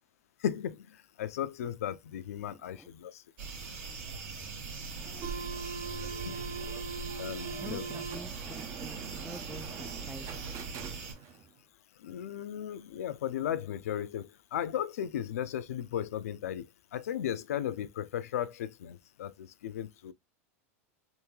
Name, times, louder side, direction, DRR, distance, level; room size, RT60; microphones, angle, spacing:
voice 1, 0.4-3.2 5.4-5.5 6.2-6.4 7.2-7.8 12.0-16.6 16.9-20.1, left 10 dB, 85° left, 0.4 m, -36 dB
voice 2, 2.4-2.9 7.5-10.5, equal, ahead, 0.3 m, -47 dB
sound 1, 3.4-11.1, right 4 dB, 60° right, 1.5 m, -41 dB
sound 2, 5.0-11.4, right 5 dB, 45° right, 0.7 m, -42 dB
3.5 x 2.6 x 3.1 m
hypercardioid pair, 115°, 8 cm